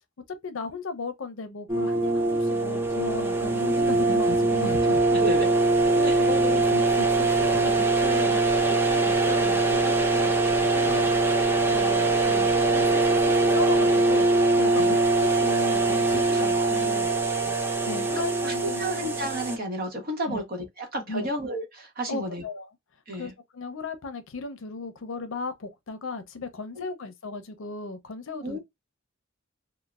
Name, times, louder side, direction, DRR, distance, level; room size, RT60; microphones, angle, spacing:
voice 1, 0.4-5.2 5.9-8.4 8.7-10.3 10.7-11.2 11.6-12.9 13.5-17.1 17.9-19.2 20.3-20.4 21.1-21.3 22.1-22.7 23.2-28.6, left 4 dB, 70° left, 0.6 m, -36 dB
sound 1, 1.7-19.6, right 2 dB, 10° right, 0.3 m, -22 dB
voice 2, 5.1-5.5 6.1-6.2 14.8-15.0 16.3-17.0 17.4-17.6 18.4-22.4 23.1-23.3 26.9-27.0 28.4-28.6, right 1 dB, 50° right, 0.9 m, -32 dB
3.1 x 2.1 x 2.3 m
head